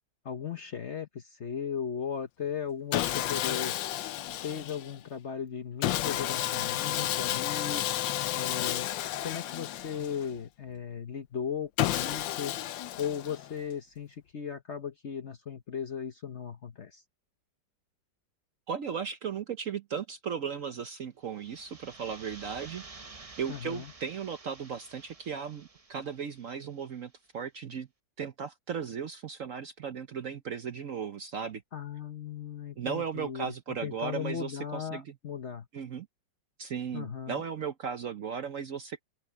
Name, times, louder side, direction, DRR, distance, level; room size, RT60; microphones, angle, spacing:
voice 1, 0.2-3.7 4.4-7.8 8.3-8.9 9.2-12.6 13.0-17.0 23.5-23.9 31.7-33.5 33.8-35.7 36.9-37.4, left 7 dB, 50° left, 1.0 m, -37 dB
Sawing, 2.9-5.0 5.8-10.4 11.8-13.6, left 13 dB, 75° left, 1.4 m, -32 dB
voice 2, 18.7-22.8 23.4-27.9 28.2-31.6 32.8-35.1 35.7-36.1 36.6-39.0, right 7 dB, 55° right, 1.0 m, -36 dB
sound 1, 21.2-26.9, right 3 dB, 25° right, 0.9 m, -51 dB
open air
omnidirectional pair, 2.0 m